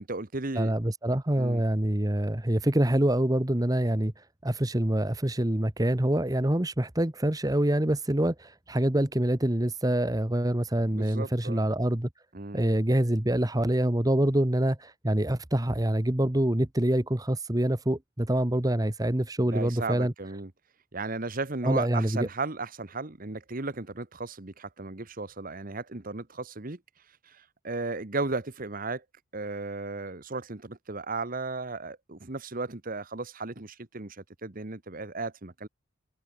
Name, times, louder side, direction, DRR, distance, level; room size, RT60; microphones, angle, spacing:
voice 1, 0.0-0.7 1.4-1.6 10.9-11.7 12.3-12.6 19.4-20.5 20.9-26.8 27.2-29.0 29.3-35.7, right 3 dB, 45° right, 1.3 m, -35 dB
voice 2, 0.5-4.1 4.4-12.1 12.5-20.1 21.6-22.3, right 1 dB, 20° right, 1.2 m, -26 dB
head